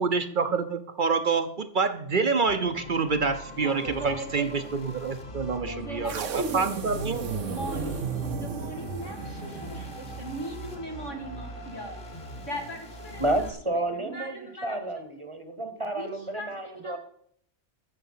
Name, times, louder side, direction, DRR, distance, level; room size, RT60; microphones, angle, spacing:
voice 1, 0.0-7.4, right 4 dB, 50° right, 9 dB, 0.8 m, -27 dB
sound 1, 2.5-13.5, left 1 dB, 45° left, 1.8 m, -41 dB
voice 2, 3.6-4.7 5.6-6.8 7.4-12.0 12.5-13.5 13.9-14.8 15.9-16.5 16.8-16.9, right 1 dB, 90° left, 2 dB, 2.6 m, -39 dB
sound 2, 6.1-10.4, right 5 dB, 85° right, 1.3 m, -34 dB
voice 3, 13.2-17.0, right 1 dB, 25° right, 8 dB, 1.0 m, -30 dB
13.0 x 7.0 x 5.6 m, 0.69 s
omnidirectional pair, 1.2 m